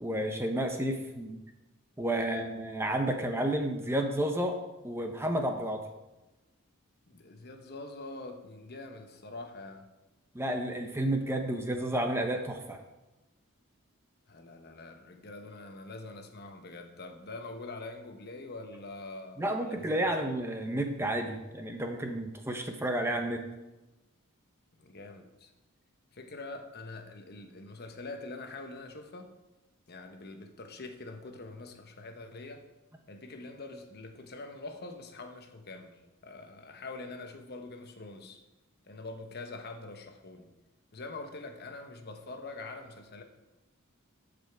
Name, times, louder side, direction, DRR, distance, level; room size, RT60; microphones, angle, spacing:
voice 1, 0.0-1.4 2.0-4.6 4.8-5.8 10.3-12.8 19.4-23.4, right 1 dB, 10° right, 4 dB, 0.8 m, -31 dB
voice 2, 2.2-2.5 7.1-9.9 14.3-20.1 24.8-25.5 26.1-29.3 29.9-32.6 33.1-38.4 38.8-40.5 40.9-43.2, left 2 dB, 45° left, 5 dB, 1.0 m, -44 dB
14.0 x 5.2 x 4.7 m, 1.0 s
head